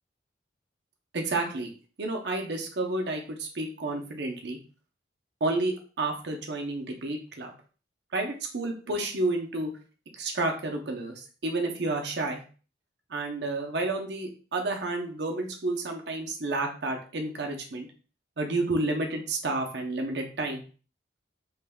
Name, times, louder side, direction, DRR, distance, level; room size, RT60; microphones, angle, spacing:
voice 1, 1.1-1.7 2.0-4.6 5.4-7.5 8.1-9.7 10.2-12.4 13.1-17.9 18.4-20.6, right 2 dB, 65° right, 2 dB, 0.7 m, -30 dB
3.5 x 3.2 x 2.3 m, 0.37 s
head